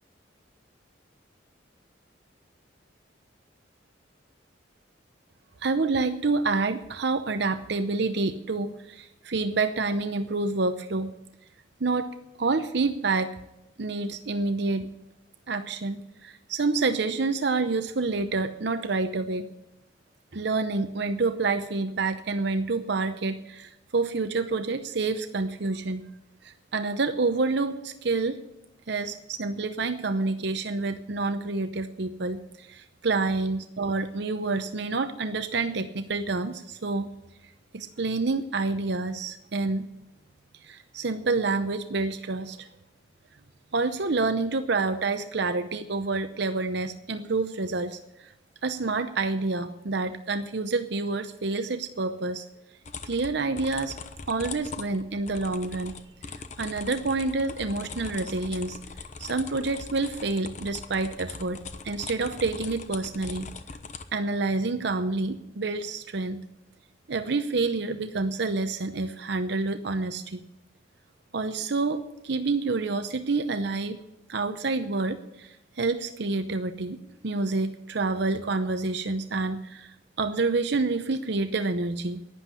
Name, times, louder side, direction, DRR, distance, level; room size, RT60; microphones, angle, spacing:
voice 1, 5.6-11.1 11.8-13.3 13.8-14.9 15.5-19.5 20.3-26.0 26.4-28.4 28.9-37.1 37.7-39.9 40.6-42.7 43.7-48.3 48.6-52.5 53.0-54.0 54.3-55.9 56.6-58.8 59.2-63.5 64.1-66.4 67.1-70.4 71.3-74.0 74.3-77.0 77.2-82.2, right 3 dB, 60° right, 9 dB, 0.7 m, -28 dB
sound 1, 52.8-64.0, left 4 dB, 40° left, 0.9 m, -41 dB
11.5 x 10.0 x 8.2 m, 0.87 s
head